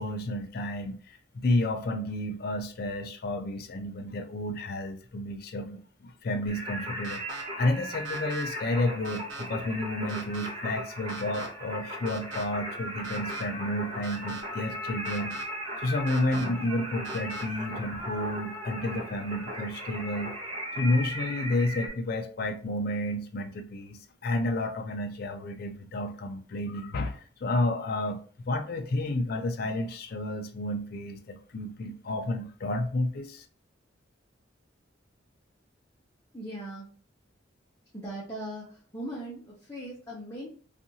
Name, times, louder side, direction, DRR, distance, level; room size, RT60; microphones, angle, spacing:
voice 1, 0.0-15.4 15.8-20.3 20.8-33.5, left 1 dB, 50° left, 7 dB, 0.4 m, -31 dB
Singing, 6.5-21.9, equal, 30° right, 0.8 m, -37 dB
sound 1, 7.0-7.4 8.1-8.4 9.1-9.4 10.1-10.5 11.1-11.5 12.1-12.4 13.0-13.4 14.0-14.4 15.1-15.4 16.1-16.5 17.1-17.4, right 3 dB, 80° right, 0.6 m, -41 dB
voice 2, 36.3-36.9 37.9-40.5, right 1 dB, 15° left, -7 dB, 0.8 m, -39 dB
2.7 x 2.5 x 2.7 m, 0.41 s
head